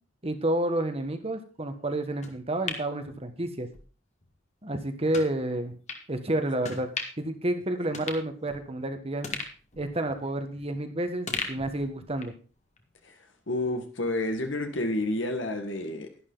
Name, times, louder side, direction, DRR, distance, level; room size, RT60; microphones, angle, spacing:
voice 1, 0.2-3.7 4.6-5.7 6.1-6.9 7.2-9.3 9.8-12.3, right 1 dB, 30° right, 1.3 m, -30 dB
sound 1, 2.2-3.8 4.2-4.3 5.1-5.3 5.9-6.0 6.6-7.3 7.6-7.7 7.9-8.8 9.2-10.8 11.3-12.4 12.8-12.9, left 4 dB, 35° left, 1.7 m, -38 dB
voice 2, 13.5-16.1, left 2 dB, 70° left, 1.8 m, -30 dB
11.5 x 11.5 x 3.9 m
head